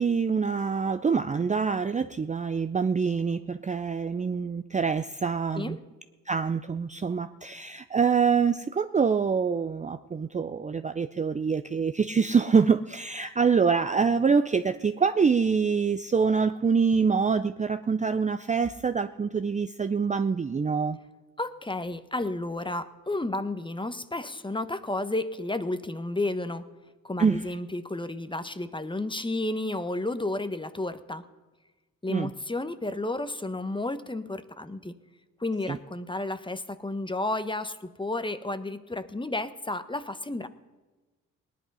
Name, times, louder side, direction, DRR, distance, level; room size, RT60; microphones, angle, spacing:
voice 1, 0.0-5.8 6.3-21.0 27.2-27.4 32.1-32.3 35.7-35.8, right 5 dB, 20° right, 9 dB, 0.5 m, -25 dB
voice 2, 21.4-26.7 27.0-31.2 32.0-34.9 35.4-40.5, left 2 dB, 15° left, 11 dB, 1.1 m, -32 dB
18.5 x 10.5 x 5.5 m, 1.2 s
supercardioid pair, 55°, 37 cm